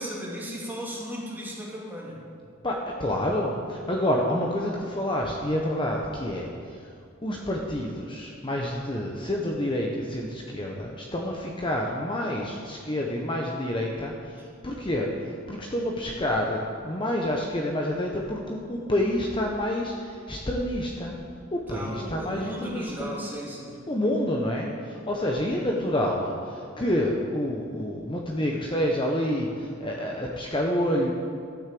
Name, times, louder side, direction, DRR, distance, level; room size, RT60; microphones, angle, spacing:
voice 1, 0.0-2.2 21.7-23.8, equal, 10° right, -5 dB, 2.5 m, -36 dB
voice 2, 2.6-6.5 7.2-14.1 14.6-15.1 15.5-21.1 21.5-23.1 23.9-31.1, left 1 dB, 25° left, 0 dB, 0.9 m, -28 dB
12.5 x 6.3 x 7.7 m, 2.3 s
head